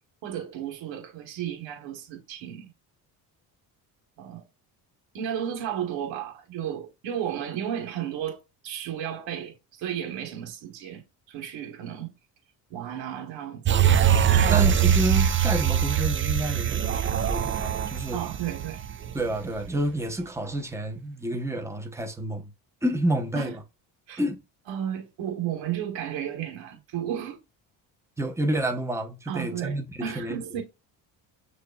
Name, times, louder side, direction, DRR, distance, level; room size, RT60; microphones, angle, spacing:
voice 1, 0.2-2.7 4.2-4.4 5.1-8.4 8.6-12.1 12.7-13.8 14.2-14.7 18.1-18.8 23.3-23.6 24.1-24.2 24.7-27.4 29.3-30.6, right 10 dB, 80° right, 1.6 m, -33 dB
sound 1, 13.6-19.3 19.7-19.8, right 8 dB, 30° right, 0.4 m, -22 dB
voice 2, 14.5-18.2 19.1-22.5 22.8-23.6 24.2-24.4 28.2-30.4, right 1 dB, 5° right, 1.2 m, -29 dB
6.4 x 3.0 x 2.5 m
supercardioid pair, 75°, 45 cm